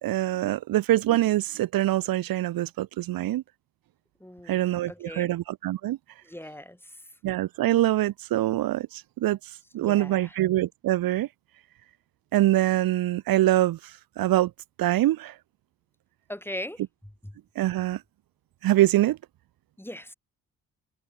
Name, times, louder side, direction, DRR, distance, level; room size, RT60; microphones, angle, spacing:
voice 1, 0.0-3.4 4.5-6.0 7.2-11.3 12.3-14.5 14.8-15.4 17.6-18.0 18.6-19.2, right 14 dB, 70° right, 0.9 m, -24 dB
voice 2, 4.2-4.6 4.9-5.3 6.2-7.1 9.8-10.4 16.3-17.4 19.8-20.1, left 1 dB, 5° left, 5.1 m, -40 dB
supercardioid pair, 50°, 36 cm